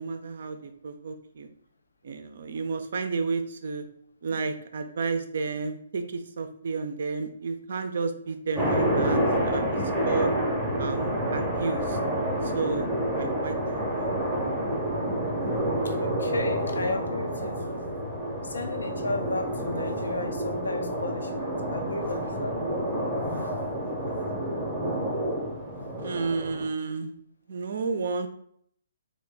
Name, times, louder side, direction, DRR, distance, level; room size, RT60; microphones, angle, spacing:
voice 1, 0.0-1.5 2.0-3.9 4.2-9.6 10.0-10.3 10.8-12.0 12.4-12.9 13.2-14.1 26.0-27.1 27.5-28.3, right 4 dB, 55° right, 7 dB, 0.4 m, -31 dB
sound 1, 8.5-26.7, right 1 dB, 5° right, 0.7 m, -29 dB
voice 2, 15.8-17.8 18.4-22.7, left 2 dB, 65° left, 5 dB, 0.5 m, -34 dB
3.0 x 2.1 x 3.3 m, 0.65 s
figure-of-eight pair, 130°, 0 cm